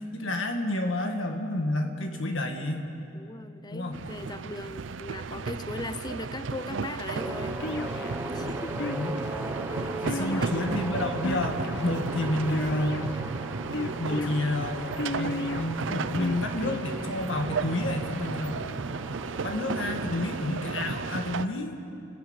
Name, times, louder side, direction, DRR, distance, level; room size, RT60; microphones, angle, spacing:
voice 1, 0.1-2.9 3.7-4.0 8.8-9.1 10.0-13.0 13.9-14.8 15.2-18.6 19.4-21.8, left 1 dB, 80° left, 3 dB, 1.8 m, -30 dB
voice 2, 1.8-2.2 3.1-7.6 8.3-8.8 9.7-10.5 14.1-14.4, left 2 dB, 20° left, 13 dB, 0.6 m, -40 dB
sound 1, 3.9-21.5, right 4 dB, 75° right, 0.6 m, -34 dB
sound 2, 7.1-20.4, right 1 dB, 10° right, 0.8 m, -38 dB
sound 3, 7.6-8.2 8.8-9.3 10.0-10.8 11.2-11.9 12.5-13.2 13.7-14.3 15.0-15.6 16.2-16.8, left 2 dB, 60° left, 0.7 m, -33 dB
29.0 x 12.0 x 8.8 m, 2.8 s
head